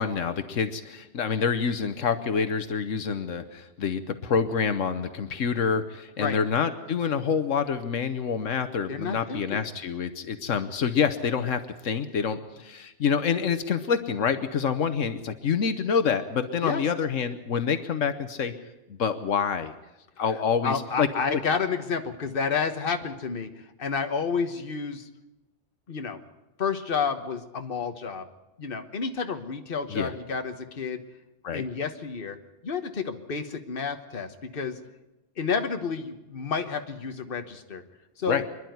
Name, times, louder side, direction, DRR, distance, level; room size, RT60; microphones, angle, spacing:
voice 1, 0.0-18.5 18.9-19.7 20.2-21.4 22.9-23.0 29.9-30.1 31.4-31.6 38.3-38.4, left 6 dB, 80° left, 10 dB, 1.4 m, -27 dB
voice 2, 8.9-9.6 16.6-16.8 20.6-23.5 23.8-25.1 25.9-26.2 26.6-28.3 28.6-31.0 31.5-32.4 32.6-34.8 35.4-37.8 38.2-38.4, left 5 dB, 45° left, 7 dB, 1.5 m, -30 dB
25.5 x 11.5 x 9.4 m, 0.98 s
omnidirectional pair, 1.3 m